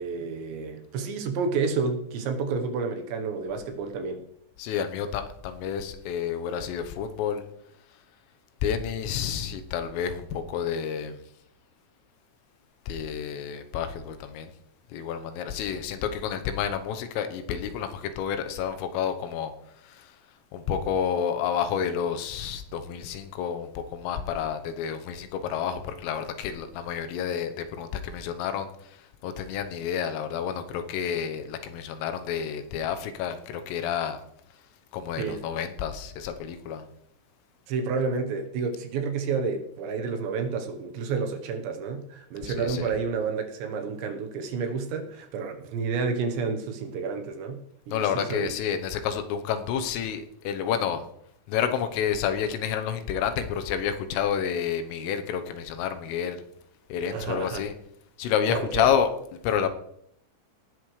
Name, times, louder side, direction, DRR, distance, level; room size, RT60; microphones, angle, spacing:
voice 1, 0.0-4.2 35.1-35.4 37.7-48.6 57.1-57.6 58.5-58.9, right 5 dB, 70° right, 5 dB, 3.0 m, -30 dB
voice 2, 4.6-7.4 8.6-11.1 12.9-14.5 14.9-19.5 20.5-28.7 29.2-34.2 34.9-36.8 42.4-42.9 47.9-51.0 51.5-56.4 56.9-57.7 58.2-59.1 59.4-59.7, left 8 dB, 80° left, 7 dB, 3.6 m, -29 dB
19.0 x 12.0 x 3.3 m, 0.73 s
omnidirectional pair, 6.0 m